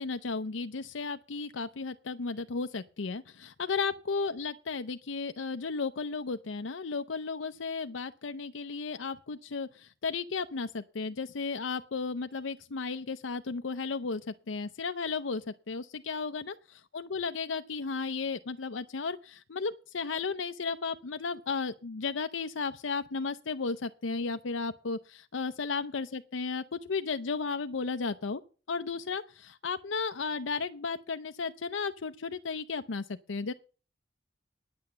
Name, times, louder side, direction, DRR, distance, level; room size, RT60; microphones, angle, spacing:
voice 1, 0.0-28.4 28.7-33.5, left 4 dB, 90° left, 0.6 m, -34 dB
9.8 x 8.6 x 7.1 m
head